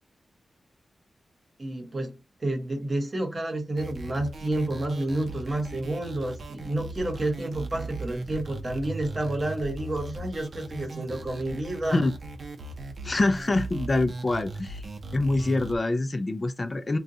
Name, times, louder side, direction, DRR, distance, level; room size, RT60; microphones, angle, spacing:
voice 1, 1.6-2.1 2.4-12.0, right 1 dB, 35° right, 1.1 m, -30 dB
sound 1, 3.8-15.8, right 2 dB, 65° right, 0.6 m, -38 dB
voice 2, 13.0-14.8 15.1-17.0, left 2 dB, 30° left, 0.4 m, -25 dB
3.7 x 2.3 x 2.7 m
wide cardioid pair, 85°, 0 cm